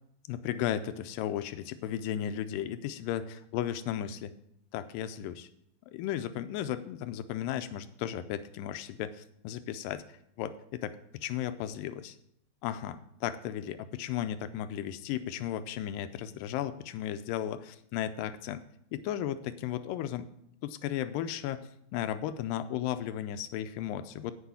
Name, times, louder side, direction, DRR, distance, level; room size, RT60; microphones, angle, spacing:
voice 1, 0.3-4.3 4.7-5.5 5.9-10.0 10.4-12.2 12.6-18.6 18.9-20.3 20.6-24.3, left 11 dB, 80° left, 11 dB, 2.0 m, -35 dB
9.8 x 5.6 x 8.4 m, 0.73 s
omnidirectional pair, 4.4 m